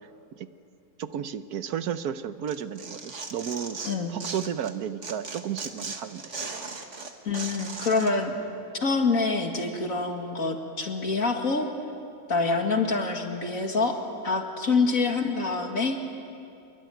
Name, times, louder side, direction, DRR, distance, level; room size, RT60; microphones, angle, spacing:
voice 1, 1.0-3.8 4.1-6.3, right 9 dB, 85° right, 12 dB, 1.4 m, -33 dB
Tearing, 2.5-4.7 5.0-8.1, right 4 dB, 55° right, 2.0 m, -37 dB
voice 2, 7.2-8.3 8.8-11.7 12.3-14.0 14.2-16.0, left 4 dB, 65° left, 3 dB, 2.5 m, -26 dB
27.0 x 22.5 x 9.2 m, 2.6 s
omnidirectional pair, 1.6 m